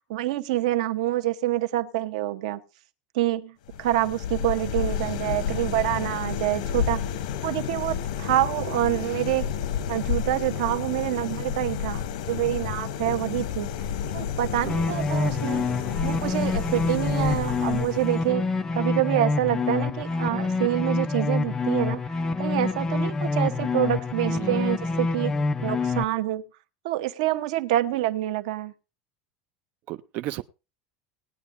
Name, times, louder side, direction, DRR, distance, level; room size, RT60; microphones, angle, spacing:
voice 1, 0.1-2.6 3.1-7.0 7.4-9.5 9.9-13.7 14.1-15.7 16.0-18.4 18.7-22.0 22.4-25.3 25.6-26.4 26.8-28.7, right 14 dB, 85° right, 1.0 m, -26 dB
sound 1, 3.7-18.3, left 8 dB, 90° left, 0.8 m, -31 dB
sound 2, 14.7-26.0, left 3 dB, 15° left, 0.6 m, -26 dB
voice 2, 24.3-24.7 29.9-30.4, right 16 dB, 45° right, 0.5 m, -34 dB
19.0 x 9.6 x 2.6 m
supercardioid pair, 160°, 4 cm